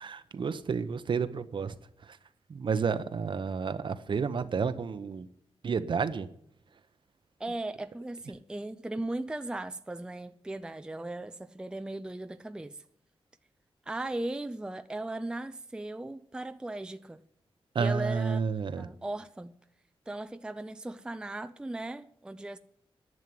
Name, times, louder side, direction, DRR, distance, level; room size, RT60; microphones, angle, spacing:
voice 1, 0.0-1.7 2.0-2.2 2.5-5.3 5.6-6.3 17.7-18.9, right 5 dB, 55° right, 0.8 m, -31 dB
voice 2, 7.4-12.8 13.9-17.2 17.8-18.4 18.8-19.5 20.1-22.6, right 2 dB, 10° right, 0.4 m, -37 dB
11.0 x 7.4 x 9.6 m
wide cardioid pair, 155°, 10 cm